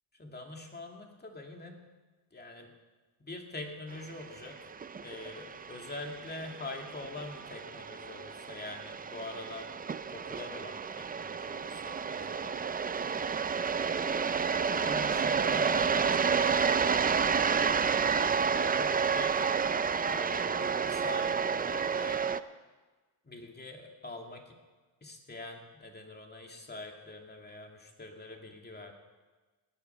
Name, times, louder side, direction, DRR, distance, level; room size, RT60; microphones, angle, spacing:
voice 1, 0.1-1.8 2.3-2.7 3.2-4.6 5.0-9.7 10.1-13.3 13.7-14.4 14.7-19.4 20.1-22.3 23.2-24.6 25.0-28.9, left 2 dB, 20° left, 2 dB, 2.4 m, -44 dB
sound 1, 4.1-22.4, right 6 dB, 20° right, 0.4 m, -30 dB
17.0 x 10.0 x 5.8 m, 1.3 s
cardioid pair, 100°, 45 cm